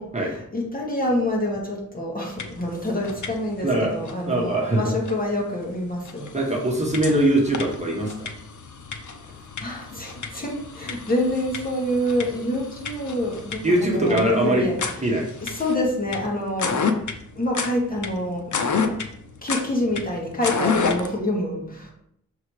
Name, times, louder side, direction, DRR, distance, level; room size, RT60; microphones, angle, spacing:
voice 1, 0.0-6.3 9.6-14.8 15.4-16.9 17.3-18.5 19.4-21.9, left 1 dB, 25° left, -2 dB, 2.0 m, -27 dB
sound 1, 2.4-2.7 3.0-3.6 4.0-4.1 5.0-5.1 5.7-5.8 6.0-21.2, left 5 dB, 65° left, 0.8 m, -30 dB
voice 2, 4.3-4.9 6.3-8.3 13.6-14.7 15.0-15.2, right 1 dB, 20° right, -2 dB, 1.5 m, -21 dB
6.5 x 3.8 x 4.8 m, 0.72 s
wide cardioid pair, 110°, 32 cm